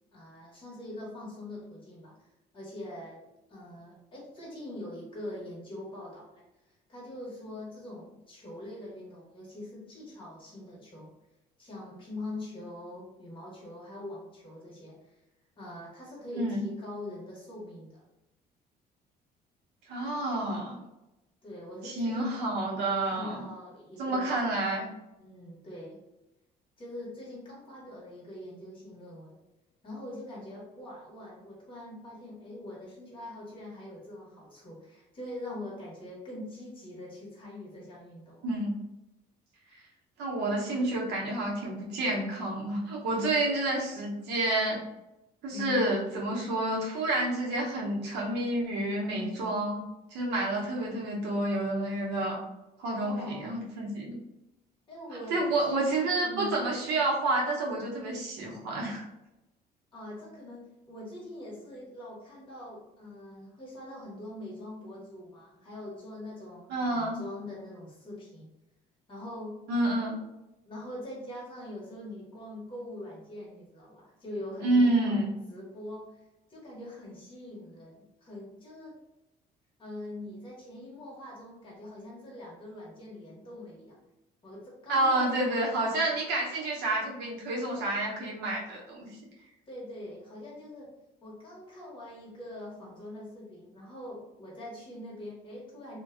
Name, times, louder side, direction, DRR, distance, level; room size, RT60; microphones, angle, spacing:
voice 1, 0.1-2.3 2.5-6.4 6.9-11.1 11.6-15.1 15.6-18.0 21.4-22.4 23.0-24.4 25.2-26.0 26.8-29.4 29.8-38.4 45.5-45.9 53.0-53.5 54.9-55.4 55.7-56.6 59.9-68.5 69.1-69.6 70.6-75.2 75.5-76.2 76.5-79.0 79.8-84.0 84.4-85.7 89.7-90.9 91.2-96.0, left 1 dB, 30° left, -5 dB, 1.1 m, -43 dB
voice 2, 19.9-20.7 21.8-23.4 24.0-24.8 38.4-38.7 39.7-39.8 40.2-44.8 45.4-49.8 50.1-52.4 52.8-54.2 55.3-59.0 66.7-67.2 69.7-70.2 74.6-75.3 84.9-89.1, right 2 dB, 90° right, -3 dB, 0.8 m, -29 dB
2.5 x 2.2 x 2.5 m, 0.93 s
cardioid pair, 110°, 17 cm